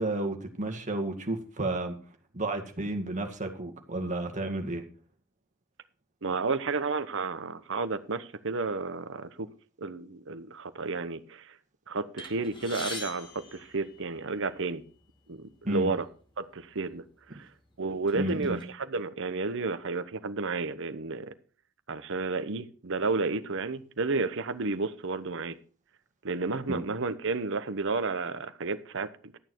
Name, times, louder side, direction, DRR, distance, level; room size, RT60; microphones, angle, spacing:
voice 1, 0.0-2.0 2.3-4.8 15.6-16.0 18.1-18.6 26.7-26.9, right 2 dB, 35° right, 2.1 m, -32 dB
voice 2, 6.2-9.5 9.8-11.5 11.9-14.8 15.3-16.1 16.4-17.0 17.3-17.5 17.8-21.3 21.9-25.6 26.2-29.4, right 3 dB, 65° right, 1.0 m, -32 dB
sound 1, 12.2-14.5 15.3-15.5 15.8-16.0 16.8-17.0 17.5-18.6, left 2 dB, 25° left, 2.3 m, -42 dB
13.0 x 9.2 x 4.6 m
head